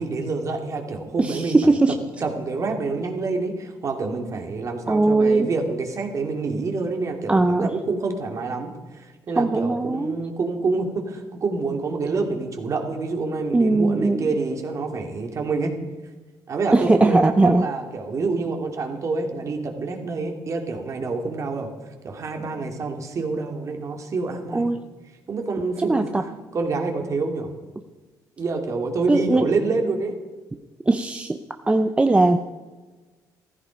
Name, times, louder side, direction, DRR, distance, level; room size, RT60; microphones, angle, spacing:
voice 1, 0.0-8.7 9.3-15.7 16.5-21.7 22.0-24.7 25.3-27.5 28.4-30.2, right 3 dB, 45° right, 4 dB, 2.6 m, -27 dB
voice 2, 1.2-2.0 4.9-5.5 7.3-7.7 9.4-10.2 13.5-14.3 16.7-17.7 24.5-24.8 25.8-26.2 29.1-29.5 30.9-31.4 31.7-32.4, right 2 dB, 15° right, 7 dB, 0.7 m, -19 dB
15.0 x 14.0 x 5.2 m, 1.3 s
cardioid pair, 100°, 7 cm